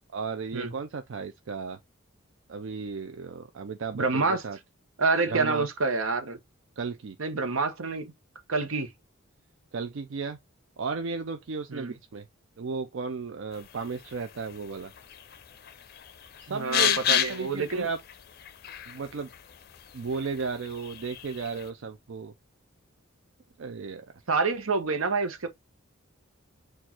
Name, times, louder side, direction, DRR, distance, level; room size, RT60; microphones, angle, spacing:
voice 1, 0.1-1.8 2.5-4.6 5.3-5.7 6.8-7.2 9.7-10.4 10.8-12.3 12.6-14.9 16.4-18.0 18.9-19.3 19.9-22.3 23.6-24.1, right 5 dB, 65° right, 0.4 m, -34 dB
voice 2, 3.9-4.4 5.0-6.4 7.2-8.1 8.5-8.9 11.7-11.9 16.5-17.9 24.3-25.5, right 3 dB, 80° right, 0.9 m, -27 dB
sound 1, 13.5-21.7, left 10 dB, 50° left, 0.5 m, -33 dB
4.4 x 2.4 x 4.2 m
head